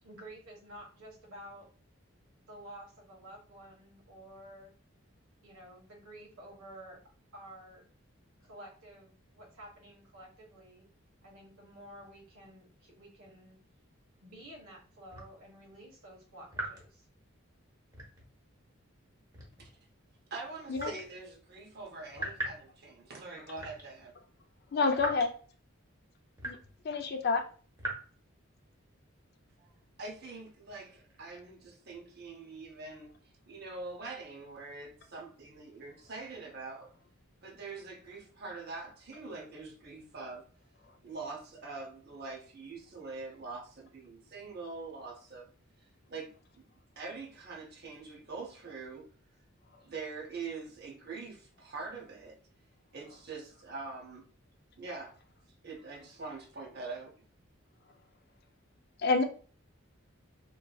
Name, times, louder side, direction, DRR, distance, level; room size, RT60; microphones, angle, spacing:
voice 1, 0.0-1.7 2.5-4.7 5.4-7.0 7.3-7.8 8.4-10.9 11.2-13.6 14.2-17.1, right 1 dB, 85° right, 1.2 m, -51 dB
sound 1, 15.1-15.4 16.5-16.9 17.9-18.3 19.3-19.7 20.8-21.1 22.2-22.6 23.6-23.9 25.0-25.3 26.4-26.8 27.8-28.0, right 1 dB, 20° right, 0.8 m, -39 dB
voice 2, 20.3-24.1 29.6-29.7 30.0-33.1 33.5-36.9 37.4-40.5 41.0-45.5 46.1-46.7 47.0-49.1 49.8-52.4 52.9-54.3 54.8-55.2 55.6-57.1, right 3 dB, 50° right, 0.7 m, -44 dB
voice 3, 24.7-25.3 26.4-26.6 26.8-27.5 59.0-59.2, left 4 dB, 50° left, 0.4 m, -28 dB
3.0 x 2.6 x 2.2 m
head